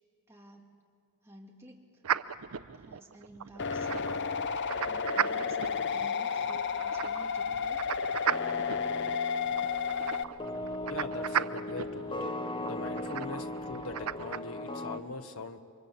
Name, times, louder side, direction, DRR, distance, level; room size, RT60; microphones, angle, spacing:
voice 1, 0.3-0.7 1.2-1.8 2.8-4.3 4.9-7.8, right 1 dB, 10° right, -1 dB, 2.6 m, -52 dB
sound 1, 2.0-14.4, right 8 dB, 85° right, 0.6 m, -37 dB
sound 2, 3.6-10.2, left 6 dB, 55° left, 0.7 m, -32 dB
sound 3, 8.3-15.0, left 2 dB, 20° left, 0.9 m, -38 dB
voice 2, 10.9-12.4 12.6-15.6, left 3 dB, 70° left, 7 dB, 1.3 m, -41 dB
28.5 x 24.0 x 7.3 m, 2.3 s
head